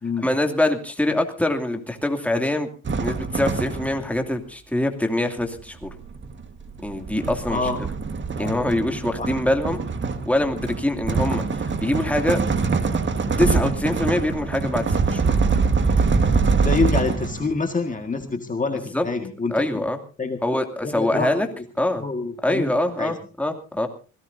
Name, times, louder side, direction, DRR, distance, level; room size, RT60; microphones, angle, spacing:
voice 1, 0.2-2.7 3.0-5.9 6.8-7.6 8.4-9.8 10.3-12.4 13.4-15.2 18.9-19.1 19.5-20.0 20.4-21.5 21.8-22.0 22.4-23.9, left 1 dB, 5° left, 4 dB, 2.6 m, -24 dB
sound 1, 2.8-4.2 5.4-17.6, right 4 dB, 40° right, 1.7 m, -24 dB
voice 2, 7.5-7.8 8.3-8.5 9.2-9.3 16.6-19.8 20.2-20.4 20.8-21.4 21.9-22.7 23.0-23.2, left 4 dB, 25° left, 4 dB, 1.8 m, -26 dB
26.0 x 17.5 x 2.7 m, 0.35 s
cardioid pair, 90°, 30 cm